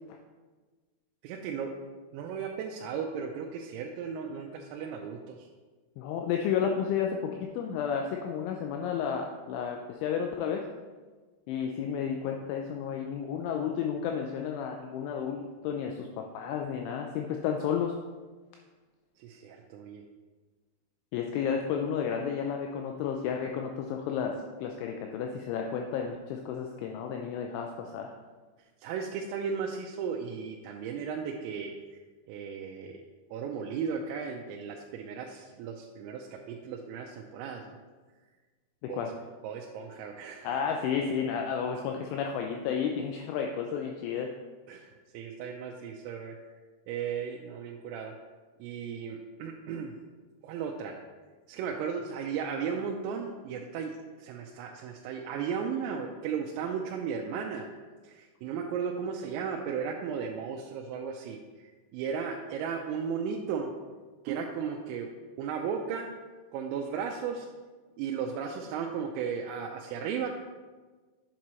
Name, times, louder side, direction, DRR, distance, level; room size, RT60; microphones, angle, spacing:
voice 1, 1.2-1.7 2.1-5.5 19.2-20.0 28.8-31.7 32.3-33.0 33.3-37.7 38.9-39.0 39.4-40.5 44.7-46.4 46.9-48.1 48.6-49.9 50.4-50.9 51.5-57.7 58.0-61.4 61.9-63.7 64.2-65.1 65.4-66.1 66.5-67.5 68.0-70.3, right 6 dB, 85° right, 0 dB, 3.2 m, -35 dB
voice 2, 6.0-10.7 11.5-17.9 21.1-28.1 38.8-39.1 40.4-44.3, left 7 dB, 85° left, 3 dB, 2.7 m, -32 dB
8.1 x 7.4 x 3.0 m, 1.4 s
omnidirectional pair, 5.9 m